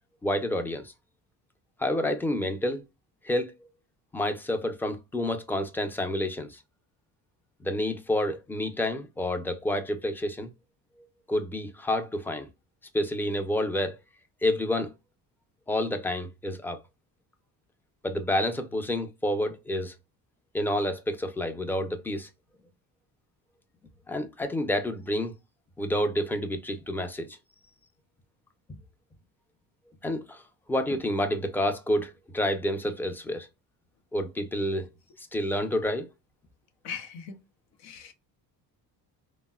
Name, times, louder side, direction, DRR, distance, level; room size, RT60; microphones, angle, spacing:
voice 1, 0.2-0.9 1.8-2.8 3.2-3.5 4.1-6.6 7.6-10.5 11.3-12.5 12.9-14.0 14.4-14.9 15.7-16.8 18.0-19.9 20.5-22.3 24.1-25.3 25.8-27.3 30.0-30.4 30.7-33.5 34.1-34.9 35.3-36.1, left 1 dB, 5° left, 0.4 m, -29 dB
voice 2, 36.8-37.4 37.8-38.1, left 6 dB, 85° left, 0.7 m, -39 dB
3.5 x 2.0 x 2.2 m
cardioid pair, 100°, 41 cm